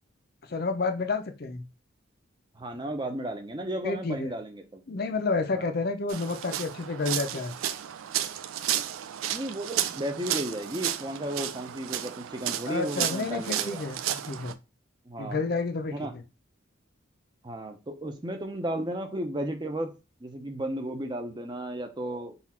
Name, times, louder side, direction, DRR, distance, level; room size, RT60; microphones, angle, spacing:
voice 1, 0.5-1.6 3.8-4.3 4.9-7.5 12.7-14.6 15.2-16.2, left 3 dB, 50° left, 7 dB, 0.5 m, -30 dB
voice 2, 2.6-4.8 5.5-5.7 9.3-13.8 15.1-15.5 15.9-16.1 17.4-19.9 20.2-22.3, right 1 dB, 20° right, 5 dB, 0.6 m, -34 dB
sound 1, 6.1-14.5, right 11 dB, 85° right, 0.3 m, -33 dB
4.1 x 2.4 x 4.2 m, 0.28 s
head